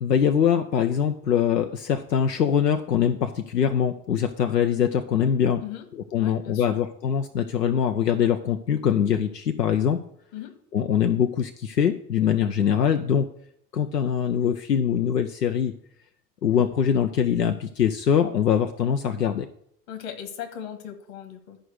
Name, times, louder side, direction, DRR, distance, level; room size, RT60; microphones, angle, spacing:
voice 1, 0.0-5.6 6.1-10.0 10.7-13.3 13.7-15.7 16.4-19.5, left 8 dB, 85° left, 7 dB, 0.6 m, -23 dB
voice 2, 6.2-6.8 10.3-10.6 19.9-21.6, left 9 dB, 55° left, 7 dB, 1.8 m, -38 dB
11.0 x 5.0 x 6.3 m, 0.68 s
figure-of-eight pair, 70°, 48 cm